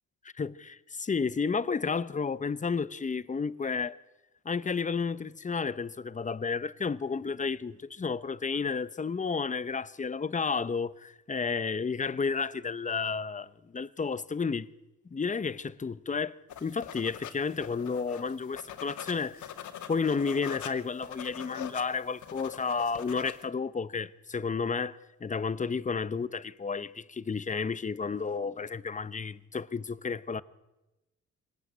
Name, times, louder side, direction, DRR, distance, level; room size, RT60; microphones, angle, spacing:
voice 1, 0.4-4.0 4.4-14.7 15.0-19.4 19.9-30.4, left 5 dB, 25° left, 0.9 m, -32 dB
sound 1, 16.5-23.4, left 10 dB, 75° left, 2.2 m, -43 dB
25.0 x 18.0 x 9.8 m
cardioid pair, 90°, 30 cm